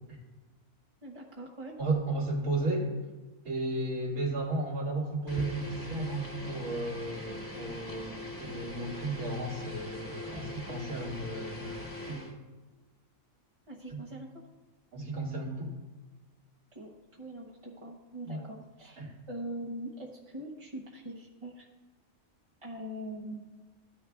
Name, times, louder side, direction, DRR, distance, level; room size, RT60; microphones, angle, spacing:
voice 1, 1.0-1.7 2.6-2.7 13.7-14.3 16.7-16.9 17.2-19.0 19.3-21.7 22.6-23.4, right 1 dB, 30° right, -3 dB, 0.7 m, -42 dB
voice 2, 1.8-2.9 3.4-12.2 13.9-14.0 14.9-15.7 18.2-18.4 19.0-19.1, right 2 dB, 90° right, -7 dB, 2.8 m, -34 dB
sound 1, 5.3-12.3, left 1 dB, 15° left, 1.3 m, -41 dB
14.5 x 9.5 x 2.3 m, 1.2 s
omnidirectional pair, 1.5 m